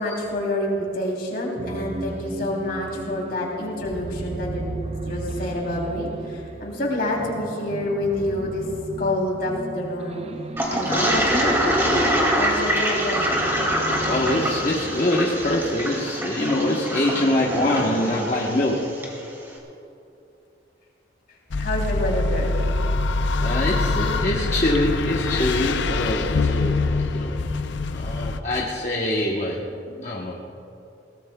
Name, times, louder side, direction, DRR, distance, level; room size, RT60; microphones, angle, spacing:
voice 1, 0.0-4.7 5.1-8.6 9.0-10.2 10.7-11.6 12.4-13.4 21.6-22.5, left 1 dB, 55° left, -2 dB, 3.0 m, -27 dB
sound 1, 1.6-18.3, right 2 dB, 35° right, 0.5 m, -36 dB
Toilet flush, 10.6-19.1, equal, 15° right, 2.2 m, -24 dB
voice 2, 14.1-19.0 23.4-27.4 27.9-30.3, left 1 dB, 35° left, -2 dB, 1.0 m, -24 dB
sound 2, 21.5-28.4, left 3 dB, 75° left, 0.5 m, -24 dB
22.0 x 17.5 x 2.3 m, 2.8 s
head